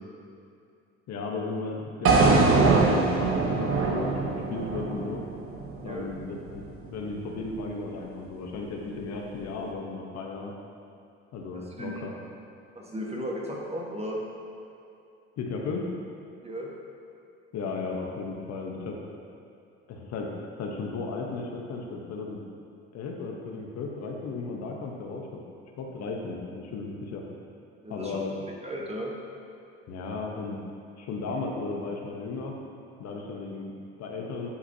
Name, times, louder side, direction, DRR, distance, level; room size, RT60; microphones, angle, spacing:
voice 1, 1.1-5.2 5.8-6.6 6.9-10.5 11.3-12.1 15.4-15.8 17.5-19.0 19.9-20.3 20.6-22.4 22.9-25.2 25.8-27.2 27.9-28.3 29.9-30.6 31.0-32.5 33.0-34.5, left 3 dB, 50° left, 0 dB, 1.0 m, -35 dB
sound 1, 2.1-6.2, right 3 dB, 40° right, 1.0 m, -23 dB
voice 2, 11.5-12.0 12.7-14.2 16.4-16.7 27.8-29.1, equal, 20° right, -2 dB, 1.3 m, -35 dB
9.8 x 4.9 x 2.7 m, 2.6 s
hypercardioid pair, 65°, 34 cm